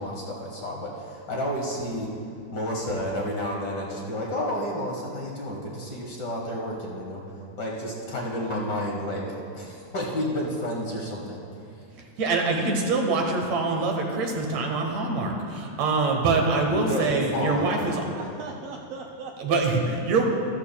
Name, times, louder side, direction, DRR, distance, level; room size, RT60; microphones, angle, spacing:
voice 1, 0.0-2.1 2.5-7.2 7.6-9.3 9.5-11.4 16.7-18.1, equal, 45° left, -2 dB, 1.5 m, -30 dB
voice 2, 12.2-18.0 19.4-20.3, right 3 dB, 65° right, 2 dB, 2.1 m, -24 dB
voice 3, 18.1-20.3, right 4 dB, 85° right, 0 dB, 1.4 m, -39 dB
14.5 x 13.0 x 2.2 m, 2.5 s
omnidirectional pair, 3.5 m